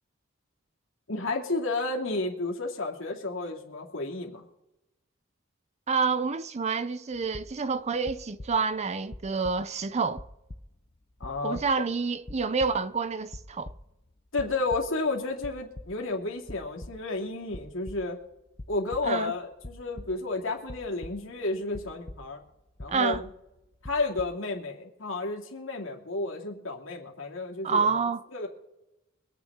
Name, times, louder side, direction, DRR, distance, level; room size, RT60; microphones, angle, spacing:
voice 1, 1.1-4.4 11.2-11.6 14.3-18.2 18.7-22.4 22.8-23.2 23.8-27.9 28.3-28.5, left 3 dB, 70° left, 2.5 m, -31 dB
voice 2, 5.9-10.2 11.4-13.7 19.0-19.3 22.9-23.2 27.6-28.2, right 5 dB, 35° right, 0.5 m, -28 dB
sound 1, 7.1-7.8 8.1-8.8 9.1-9.9 10.1-10.9 11.2-12.0 12.3-13.0 13.3-14.1 14.4-15.0 15.3-16.2 16.5-17.2 17.5-18.3 18.6-19.2 19.6-21.4 21.7-22.5 22.8-23.6 23.8-24.2, left 1 dB, 30° left, 0.7 m, -44 dB
24.5 x 9.0 x 3.6 m
head